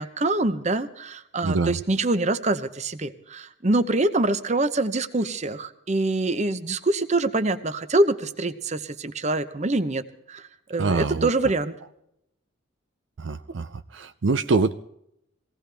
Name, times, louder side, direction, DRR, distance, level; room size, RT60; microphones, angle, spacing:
voice 1, 0.0-10.0 10.3-11.7, right 2 dB, 35° right, 11 dB, 0.8 m, -25 dB
voice 2, 1.4-1.8 10.8-11.3 13.2-14.7, right 4 dB, 60° right, 11 dB, 0.5 m, -24 dB
22.5 x 17.5 x 3.4 m, 0.78 s
head